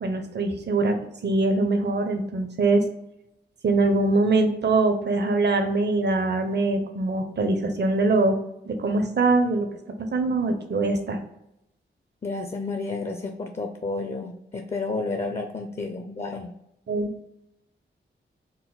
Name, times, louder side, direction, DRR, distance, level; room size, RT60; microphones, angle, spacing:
voice 1, 0.0-1.0 1.2-2.8 3.6-8.4 8.6-9.7 10.0-11.2 16.9-17.1, right 3 dB, 55° right, 6 dB, 0.6 m, -23 dB
voice 2, 12.2-16.5, left 3 dB, 30° left, 5 dB, 0.4 m, -31 dB
3.9 x 2.1 x 3.9 m, 0.82 s
cardioid pair, 55°, 21 cm